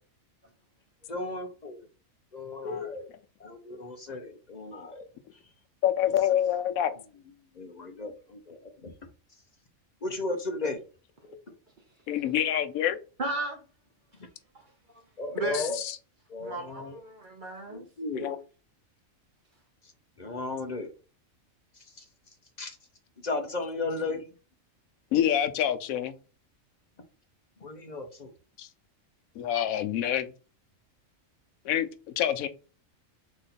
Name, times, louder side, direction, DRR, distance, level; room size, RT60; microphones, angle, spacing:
voice 1, 1.1-1.9 2.3-3.0 3.4-5.1 7.6-8.9 10.0-10.8 15.2-15.8 16.3-17.0 17.7-18.3 20.2-20.9 22.6-22.8 23.2-24.2 27.6-28.3, left 2 dB, 45° left, 0.6 m, -35 dB
voice 2, 5.8-6.9 11.2-11.4 12.1-13.0 15.5-15.9 18.1-18.4 25.1-26.1 28.6-28.7 29.4-30.3 31.6-31.9 32.2-32.5, left 10 dB, 85° left, 1.0 m, -27 dB
voice 3, 13.2-13.6 14.5-14.7 15.3-15.8 16.4-17.8, right 2 dB, 45° right, 0.8 m, -35 dB
4.0 x 3.0 x 4.0 m
omnidirectional pair, 1.4 m